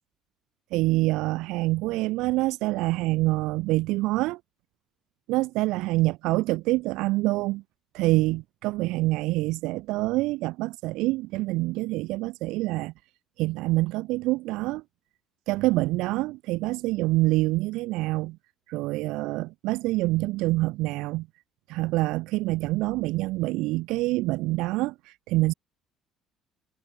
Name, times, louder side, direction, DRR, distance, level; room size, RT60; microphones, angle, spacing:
voice 1, 0.7-4.4 5.3-7.6 7.9-12.9 13.4-14.8 15.5-18.4 18.7-21.3 21.7-25.5, right 20 dB, 80° right, 2.8 m, -26 dB
cardioid pair, 180°, 0 cm